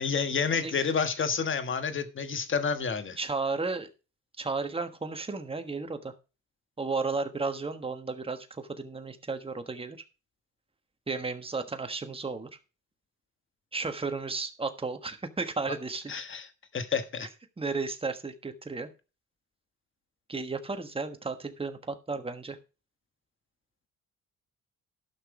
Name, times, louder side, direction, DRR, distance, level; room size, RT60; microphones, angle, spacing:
voice 1, 0.0-3.2 16.1-16.5 16.7-17.3, left 5 dB, 40° left, 1.4 m, -29 dB
voice 2, 3.2-3.9 4.4-6.1 6.8-10.0 11.1-12.5 13.7-16.1 17.6-18.9 20.3-22.6, right 4 dB, 20° right, 1.4 m, -33 dB
12.0 x 6.1 x 4.9 m
cardioid pair, 90°, 30 cm